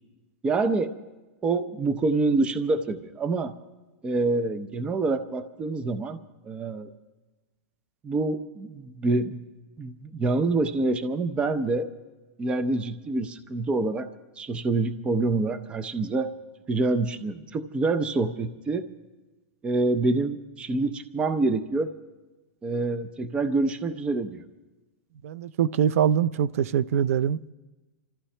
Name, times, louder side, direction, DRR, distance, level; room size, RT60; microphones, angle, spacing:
voice 1, 0.4-0.9 1.4-3.5 4.0-6.2 6.4-6.9 8.0-9.4 9.8-11.9 12.4-14.1 14.4-16.3 16.7-18.8 19.6-21.9 22.6-24.4, right 3 dB, 15° right, 0.6 m, -26 dB
voice 2, 25.2-27.5, right 9 dB, 80° right, 0.5 m, -23 dB
27.5 x 14.5 x 3.3 m
supercardioid pair, 160°, 8 cm